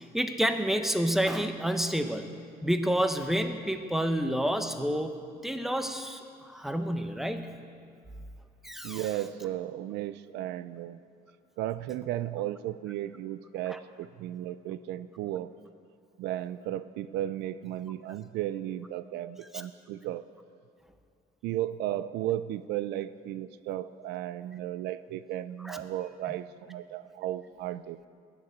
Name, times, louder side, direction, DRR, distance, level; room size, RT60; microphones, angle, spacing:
voice 1, 0.0-2.3 2.6-5.1 5.4-6.2 6.5-7.5 8.6-9.0 13.7-13.8 19.5-19.6 25.6-25.8, equal, ahead, 7 dB, 1.0 m, -29 dB
voice 2, 8.8-11.0 11.6-15.5 16.2-20.3 21.4-28.1, right 13 dB, 85° right, 15 dB, 0.5 m, -35 dB
20.0 x 7.0 x 8.0 m, 2.4 s
cardioid pair, 110°, 17 cm